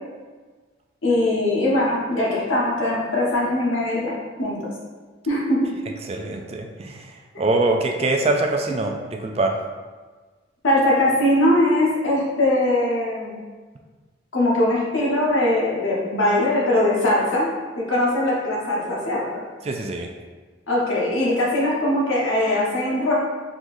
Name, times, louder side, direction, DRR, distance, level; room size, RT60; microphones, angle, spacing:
voice 1, 1.0-4.1 4.4-4.6 5.3-5.6 10.6-13.4 14.3-17.5 17.8-19.4 20.7-23.1, left 1 dB, 80° left, -5 dB, 1.2 m, -21 dB
voice 2, 6.1-7.0 7.4-9.6 19.7-20.1, right 2 dB, 30° right, 3 dB, 0.3 m, -23 dB
4.6 x 3.8 x 2.6 m, 1.4 s
head